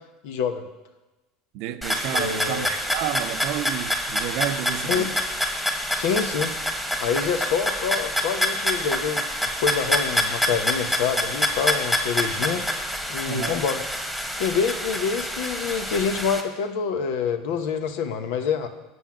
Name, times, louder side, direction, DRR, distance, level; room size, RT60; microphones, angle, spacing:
voice 1, 0.2-0.6 2.1-2.7 4.8-5.1 6.0-6.5 7.0-12.6 13.1-13.8 14.4-18.7, left 6 dB, 70° left, 1.0 m, -26 dB
voice 2, 1.5-5.2 13.3-13.6, right 11 dB, 65° right, 0.6 m, -30 dB
sound 1, 1.8-16.4, left 1 dB, ahead, 1.5 m, -27 dB
7.9 x 5.5 x 7.3 m
hypercardioid pair, 85°, 0 cm